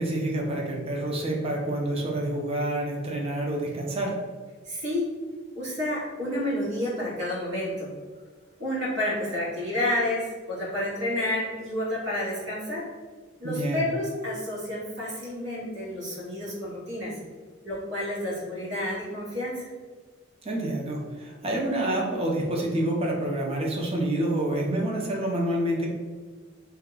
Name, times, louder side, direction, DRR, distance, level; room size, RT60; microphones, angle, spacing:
voice 1, 0.0-4.2 13.4-13.9 20.4-25.9, right 1 dB, 30° right, -1 dB, 0.6 m, -28 dB
voice 2, 4.6-5.1 5.5-7.9 8.6-12.9 13.4-17.2 17.6-19.7, left 1 dB, 65° right, -7 dB, 1.5 m, -30 dB
2.8 x 2.2 x 3.8 m, 1.4 s
head